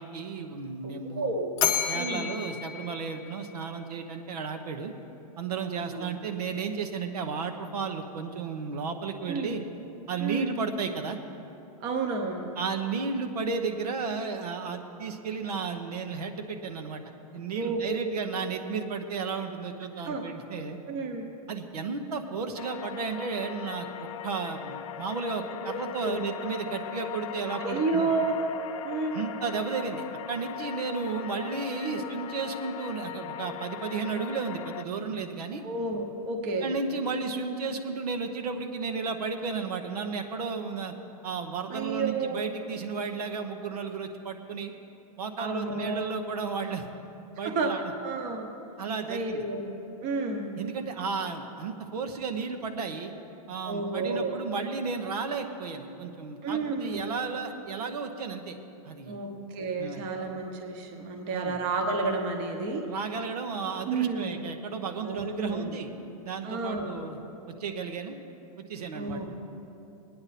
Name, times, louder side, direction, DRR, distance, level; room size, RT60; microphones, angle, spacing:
voice 1, 0.0-1.3 1.9-4.9 5.4-9.6 10.1-11.2 12.6-17.0 17.3-20.8 21.5-28.1 29.1-35.6 36.6-40.9 41.2-44.7 45.2-46.8 47.4-47.9 48.8-49.4 50.6-53.1 53.5-58.5 58.8-59.2 59.8-60.0 61.3-61.6 62.9-65.9 66.2-67.2 67.5-68.2 68.7-69.3, right 5 dB, 75° right, 5 dB, 1.0 m, -33 dB
voice 2, 1.1-1.5 1.9-2.3 5.6-6.1 9.3-9.5 10.2-10.5 11.8-12.5 17.5-18.0 20.0-20.2 20.9-21.3 25.6-25.7 26.0-26.2 27.5-28.4 28.8-29.2 31.8-32.1 35.6-36.7 41.7-42.4 45.4-46.1 47.4-47.7 48.0-48.5 49.1-49.6 50.0-50.5 53.6-54.4 56.4-57.0 59.1-62.8 63.8-64.3 65.0-65.7 66.4-67.0 68.9-69.3, right 3 dB, 25° right, 3 dB, 1.1 m, -31 dB
Bell, 1.6-3.9, left 9 dB, 20° left, 0.7 m, -31 dB
sound 1, 22.6-34.8, left 12 dB, 55° left, 0.6 m, -39 dB
19.0 x 9.7 x 4.2 m, 2.9 s
supercardioid pair, 170°, 20 cm